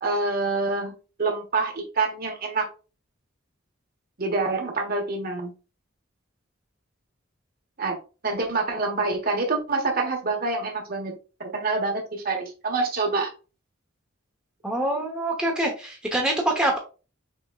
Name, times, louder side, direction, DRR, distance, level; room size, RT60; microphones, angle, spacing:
voice 1, 0.0-0.9 1.2-2.7 4.2-5.5 7.8-8.0 8.2-11.1 11.5-13.3, right 3 dB, 45° right, 2 dB, 1.2 m, -26 dB
voice 2, 14.6-16.8, right 1 dB, 5° right, -1 dB, 0.9 m, -25 dB
6.2 x 3.5 x 2.3 m, 0.33 s
head